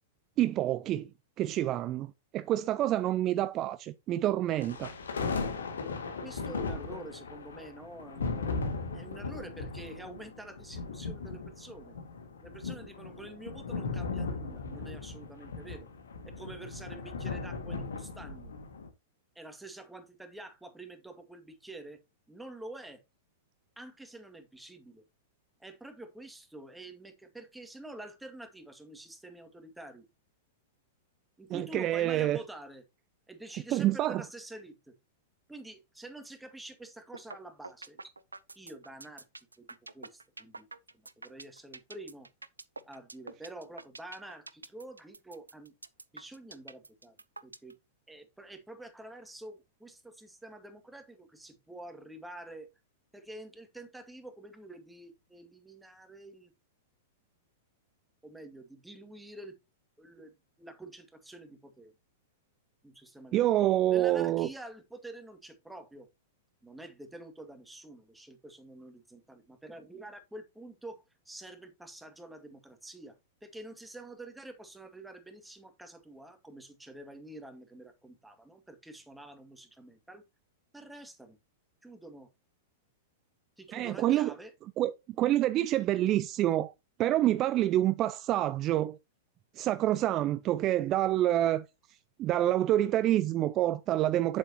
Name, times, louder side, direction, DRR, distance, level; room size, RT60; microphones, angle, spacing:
voice 1, 0.4-1.1 1.4-4.9 31.5-32.4 33.7-34.2 63.3-64.5 83.7-84.3 84.8-84.9 85.2-86.7 87.0-89.0 89.6-91.6 92.2-94.4, right 13 dB, 35° right, 0.5 m, -27 dB
sound 1, 4.6-18.9, left 4 dB, 75° left, 2.1 m, -37 dB
voice 2, 6.2-12.0 12.4-15.9 16.2-18.5 19.4-22.0 22.3-23.0 23.8-25.0 25.6-30.1 31.4-32.8 33.3-34.9 35.5-38.0 38.6-39.3 39.6-40.7 40.9-42.3 42.9-45.7 46.1-47.1 47.4-47.8 48.1-52.7 53.1-56.5 58.2-59.6 60.0-61.9 62.8-63.5 63.9-66.1 66.6-80.2 80.7-81.4 81.8-82.3 83.6-84.5, right 1 dB, 5° right, 2.1 m, -48 dB
sound 2, 37.1-37.4 37.6-47.7, right 3 dB, 90° right, 0.7 m, -46 dB
8.6 x 7.6 x 2.9 m
figure-of-eight pair, 100°, 0 cm